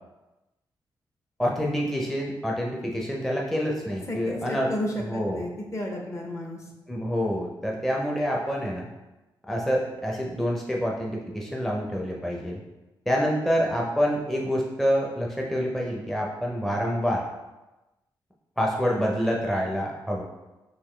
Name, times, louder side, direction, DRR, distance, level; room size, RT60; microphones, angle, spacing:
voice 1, 1.4-4.7 5.1-5.4 6.9-8.9 9.5-12.6 13.1-17.2 18.6-20.2, equal, 5° left, -2 dB, 0.5 m, -27 dB
voice 2, 4.1-6.7, left 1 dB, 35° left, 1 dB, 0.7 m, -32 dB
3.9 x 2.6 x 3.1 m, 1.0 s
cardioid pair, 85°, 9 cm